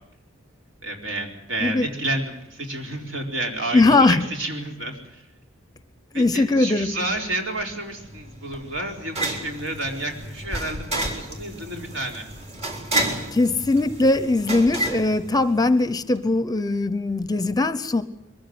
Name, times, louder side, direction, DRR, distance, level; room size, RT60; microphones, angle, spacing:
voice 1, 0.8-5.2 6.1-12.3, right 1 dB, 70° right, 2 dB, 4.4 m, -30 dB
voice 2, 3.7-4.3 6.1-7.0 13.3-18.0, left 2 dB, 20° left, 13 dB, 0.8 m, -20 dB
sound 1, 7.6-15.9, right 1 dB, 35° right, 3.7 m, -31 dB
22.5 x 15.0 x 9.7 m, 0.85 s
head